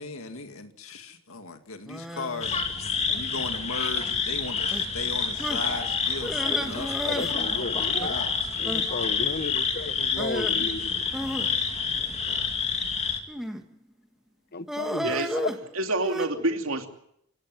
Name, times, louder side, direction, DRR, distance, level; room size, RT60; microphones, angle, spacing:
voice 1, 0.0-2.6 3.1-8.8 10.4-10.7, left 3 dB, 80° left, 6 dB, 2.2 m, -38 dB
sound 1, 1.9-2.5 3.3-3.7 4.0-4.2 4.7-4.8 5.4-5.7 6.2-7.4 7.6-7.7 8.0-8.1 8.6-8.9 10.1-10.5 11.1-12.5 13.3-13.7 14.7-16.3, equal, ahead, 1.5 m, -33 dB
sound 2, 2.4-13.2, left 5 dB, 30° left, 2.3 m, -28 dB
voice 2, 7.0-8.1 8.6-11.0 14.5-15.5, left 3 dB, 50° left, 13 dB, 1.0 m, -34 dB
voice 3, 15.0-15.3 15.7-16.9, right 2 dB, 75° right, 4 dB, 2.8 m, -27 dB
29.0 x 17.0 x 7.7 m, 0.75 s
head